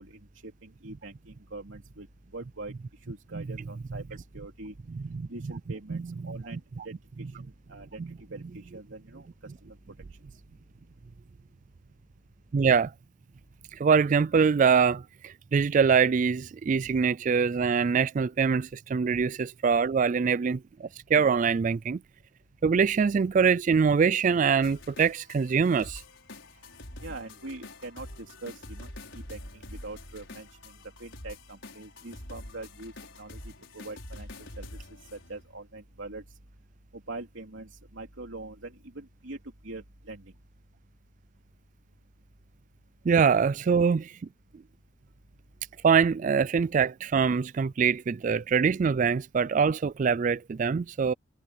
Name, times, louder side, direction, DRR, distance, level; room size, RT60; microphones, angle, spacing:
voice 1, 0.0-2.1 2.3-2.7 3.1-4.8 5.3-8.0 8.3-9.8 10.3-10.4 27.0-32.9 33.2-34.3 34.6-34.8 35.1-36.4 36.9-40.3, right 2 dB, 80° right, 2.9 m, -43 dB
voice 2, 6.5-6.9 8.0-8.1 12.5-12.9 13.7-22.0 22.6-26.0 43.1-44.1 45.8-51.1, right 6 dB, 40° right, 0.3 m, -24 dB
sound 1, 24.6-35.5, left 1 dB, 70° left, 5.9 m, -46 dB
head